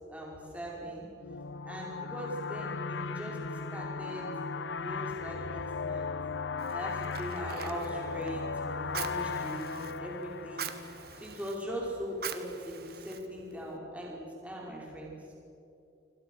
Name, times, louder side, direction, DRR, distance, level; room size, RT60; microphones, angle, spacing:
voice 1, 0.1-1.1 1.6-3.4 3.7-4.3 4.8-6.2 6.7-10.7 11.2-15.3, equal, 5° right, -3 dB, 5.1 m, -40 dB
sound 1, 1.2-11.6, left 4 dB, 70° left, 0.8 m, -37 dB
Fire, 6.6-13.8, right 7 dB, 55° right, 1.6 m, -44 dB
28.5 x 26.0 x 6.5 m, 2.8 s
head